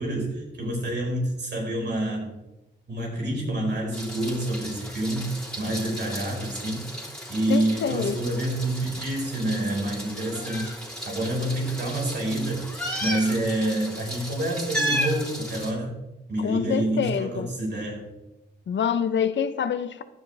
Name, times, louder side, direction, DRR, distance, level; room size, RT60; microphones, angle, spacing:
voice 1, 0.0-2.3 2.9-6.8 7.3-10.7 11.0-12.7 13.0-15.9 16.3-18.0, right 1 dB, 70° right, -1 dB, 4.8 m, -27 dB
Meow, 3.9-15.7, equal, 5° left, 3.5 m, -34 dB
voice 2, 7.5-8.2 16.4-17.5 18.7-20.0, left 8 dB, 90° left, 11 dB, 0.8 m, -26 dB
15.5 x 10.5 x 3.4 m, 0.99 s
cardioid pair, 70°, 18 cm